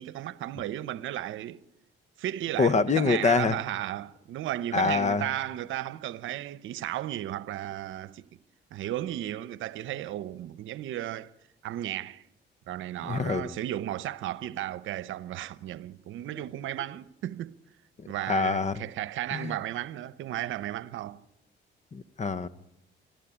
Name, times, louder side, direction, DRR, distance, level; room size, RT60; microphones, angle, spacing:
voice 1, 0.0-1.6 2.2-8.3 8.7-11.3 11.6-12.2 12.7-17.6 18.1-21.2, right 13 dB, 80° right, 0.8 m, -34 dB
voice 2, 2.6-3.6 4.7-5.3 13.0-13.4 18.3-18.8 19.3-19.6 21.9-22.5, left 4 dB, 35° left, 1.0 m, -25 dB
23.5 x 14.5 x 9.9 m
cardioid pair, 90°, 20 cm